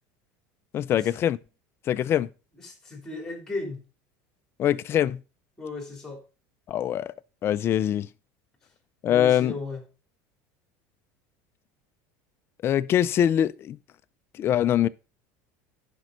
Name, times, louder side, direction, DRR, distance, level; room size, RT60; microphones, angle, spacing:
voice 1, 0.7-1.4 1.9-2.3 4.6-5.2 6.7-7.1 7.4-8.1 9.0-9.5 12.6-13.8 14.4-14.9, left 10 dB, 30° left, 0.4 m, -23 dB
voice 2, 2.6-3.8 5.6-6.2 9.1-9.8, left 3 dB, 5° left, 3.1 m, -35 dB
10.5 x 5.3 x 5.0 m
cardioid pair, 150°, 8 cm